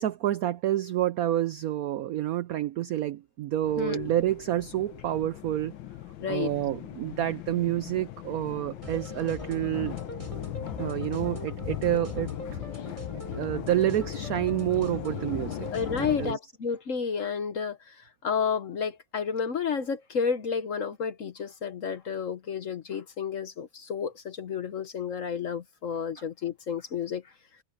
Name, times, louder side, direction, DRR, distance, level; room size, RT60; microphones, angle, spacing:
voice 1, 0.0-5.7 6.3-10.0 10.8-12.6 13.4-15.7 15.9-16.4, right 13 dB, 80° right, 0.8 m, -28 dB
sound 1, 3.6-16.3, left 13 dB, 80° left, 1.6 m, -38 dB
voice 2, 3.8-4.1 6.2-6.5 15.7-27.2, left 6 dB, 50° left, 1.1 m, -31 dB
sound 2, 8.8-16.2, equal, 15° right, 7.5 m, -41 dB
omnidirectional pair, 2.1 m